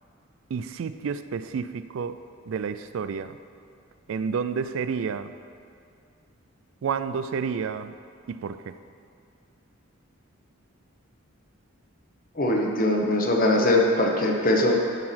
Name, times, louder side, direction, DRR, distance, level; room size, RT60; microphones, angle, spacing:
voice 1, 0.5-2.2 2.5-3.3 4.1-5.3 6.8-7.9 8.3-8.7, right 6 dB, 70° right, 12 dB, 0.3 m, -30 dB
voice 2, 12.4-14.7, left 1 dB, 40° left, 0 dB, 1.1 m, -21 dB
11.0 x 4.8 x 5.8 m, 2.4 s
head